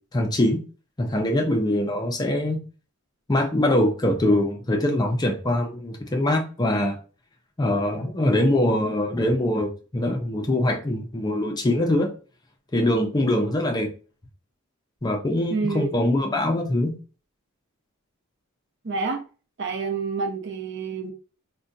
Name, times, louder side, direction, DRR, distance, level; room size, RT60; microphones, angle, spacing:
voice 1, 0.1-0.6 1.0-2.6 3.3-7.0 7.6-12.1 12.7-13.9 15.0-16.9, left 1 dB, 20° left, 0.4 m, -23 dB
voice 2, 15.5-15.9 18.8-19.2 19.6-21.1, right 4 dB, 55° right, 0.6 m, -28 dB
4.7 x 2.2 x 2.6 m
head